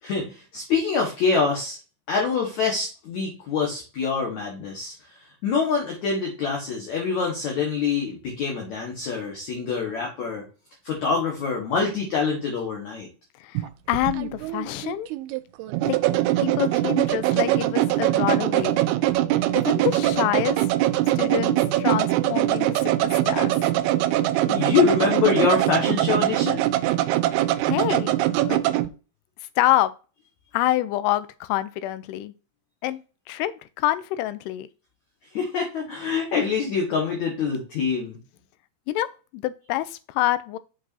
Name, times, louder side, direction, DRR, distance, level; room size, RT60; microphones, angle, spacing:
voice 1, 0.0-1.8 2.1-10.4 10.8-13.1 24.4-26.6 35.3-38.2, left 5 dB, 60° left, 2.3 m, -25 dB
voice 2, 13.4-15.1 15.9-16.0 16.4-18.8 19.5-20.7 21.2-23.5 27.6-28.1 28.5-28.6 29.6-29.9 30.5-32.3 32.8-33.0 33.3-33.5 33.8-34.7 38.9-39.1 39.3-40.6, left 14 dB, 85° left, 2.6 m, -26 dB
sound 1, 13.6-28.9, right 15 dB, 80° right, 2.4 m, -22 dB
7.5 x 6.0 x 2.7 m
omnidirectional pair, 4.7 m